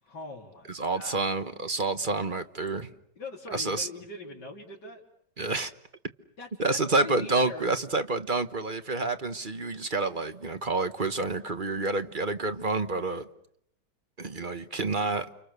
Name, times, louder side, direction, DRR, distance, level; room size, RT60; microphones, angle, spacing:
voice 1, 0.0-1.3 3.2-5.0 6.4-7.7, left 3 dB, 80° left, 4.1 m, -42 dB
voice 2, 0.7-2.9 3.5-3.9 5.4-5.7 6.6-13.3 14.2-15.3, right 3 dB, 30° right, 1.2 m, -28 dB
30.0 x 27.5 x 6.8 m
omnidirectional pair, 1.8 m